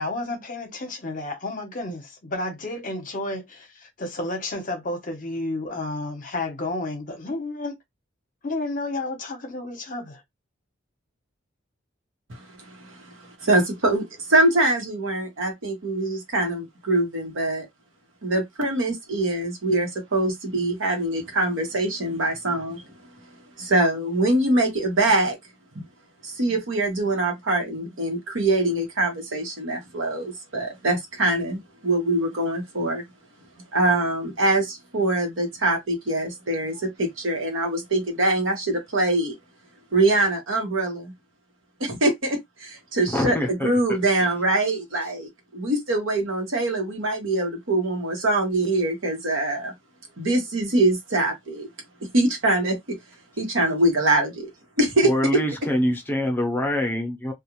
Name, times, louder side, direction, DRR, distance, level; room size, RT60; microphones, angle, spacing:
voice 1, 0.0-7.7 8.4-10.2, left 2 dB, 40° left, 0.8 m, -31 dB
voice 2, 12.3-17.7 18.2-22.8 23.6-25.4 25.7-25.8 26.2-33.0 33.7-39.4 39.9-41.1 41.8-43.3 43.6-49.7 50.2-51.7 52.1-53.0 53.4-54.5 54.8-55.1, right 2 dB, 80° right, 1.1 m, -23 dB
voice 3, 43.1-43.8 44.2-44.3 55.0-57.3, left 1 dB, 10° left, 0.7 m, -25 dB
2.4 x 2.4 x 3.0 m
head